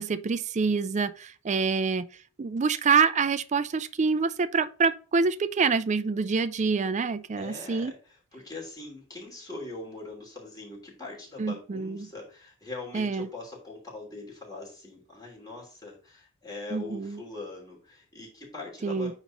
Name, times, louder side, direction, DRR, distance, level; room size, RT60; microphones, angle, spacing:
voice 1, 0.0-2.1 2.4-7.9 11.4-12.1 12.9-13.3 16.7-17.2 18.8-19.1, right 5 dB, 35° right, 0.4 m, -26 dB
voice 2, 7.4-19.1, left 3 dB, 15° left, 3.0 m, -42 dB
9.1 x 3.1 x 5.1 m
head